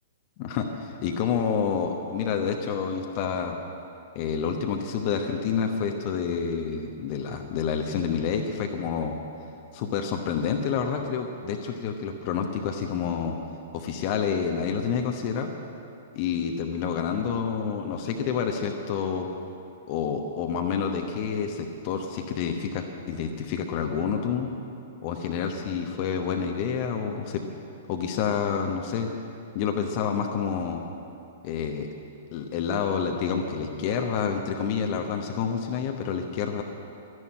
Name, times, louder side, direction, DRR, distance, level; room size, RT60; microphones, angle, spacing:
voice 1, 0.4-3.6 4.1-9.1 9.7-13.4 13.7-15.5 16.1-19.3 19.9-24.5 25.0-27.4 27.9-29.1 29.5-30.8 31.4-31.9 32.3-36.6, left 6 dB, 40° left, 4 dB, 1.1 m, -28 dB
12.5 x 11.0 x 8.8 m, 2.7 s
figure-of-eight pair, 110°, 0 cm